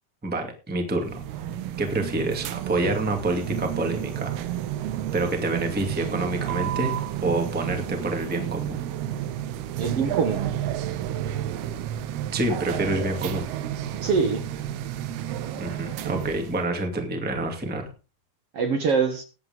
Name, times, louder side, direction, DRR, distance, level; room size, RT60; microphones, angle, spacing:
voice 1, 0.2-4.4 5.1-6.9 7.2-8.8 12.3-13.5 15.6-17.9, right 2 dB, 5° right, 4 dB, 1.0 m, -27 dB
sound 1, 1.0-16.6, right 11 dB, 85° right, 2.9 m, -31 dB
voice 2, 9.8-10.5 14.0-14.4 18.5-19.2, right 5 dB, 65° right, 6 dB, 1.5 m, -24 dB
19.5 x 8.0 x 3.6 m, 0.32 s
omnidirectional pair, 4.5 m